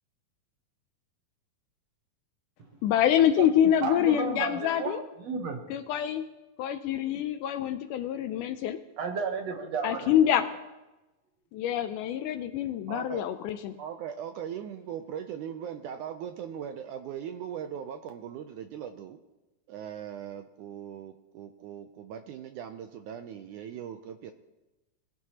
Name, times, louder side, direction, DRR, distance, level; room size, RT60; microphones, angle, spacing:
voice 1, 2.8-5.0 5.7-6.3 6.6-8.8 9.8-10.5 11.5-13.8, left 10 dB, 80° left, 10 dB, 1.9 m, -26 dB
voice 2, 3.8-5.6 9.0-10.1, right 5 dB, 60° right, 3 dB, 2.0 m, -32 dB
voice 3, 12.9-13.2 13.8-19.2 19.7-24.3, right 9 dB, 80° right, 8 dB, 1.8 m, -39 dB
21.0 x 15.5 x 2.9 m, 1.1 s
omnidirectional pair, 4.0 m